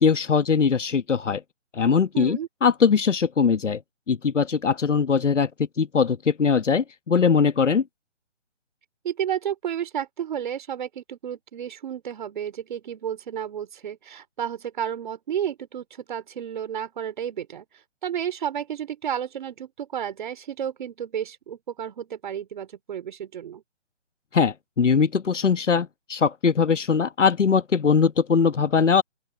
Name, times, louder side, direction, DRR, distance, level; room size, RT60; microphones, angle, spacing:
voice 1, 0.0-1.4 1.7-3.8 4.1-5.5 5.8-7.8 24.3-29.0, left 6 dB, 80° left, 1.4 m, -21 dB
voice 2, 2.1-2.5 9.0-23.6, right 9 dB, 40° right, 3.3 m, -32 dB
open air
figure-of-eight pair, 155°, 36 cm